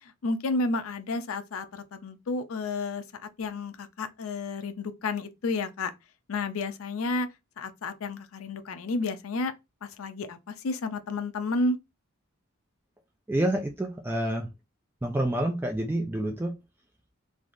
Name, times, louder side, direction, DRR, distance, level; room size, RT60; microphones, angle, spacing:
voice 1, 0.0-3.0 3.4-5.9 6.3-7.3 7.6-9.5 9.8-11.8, left 3 dB, 75° left, 0.5 m, -31 dB
voice 2, 13.3-14.5 15.0-16.6, right 1 dB, 10° right, 0.3 m, -28 dB
3.3 x 2.4 x 2.5 m
head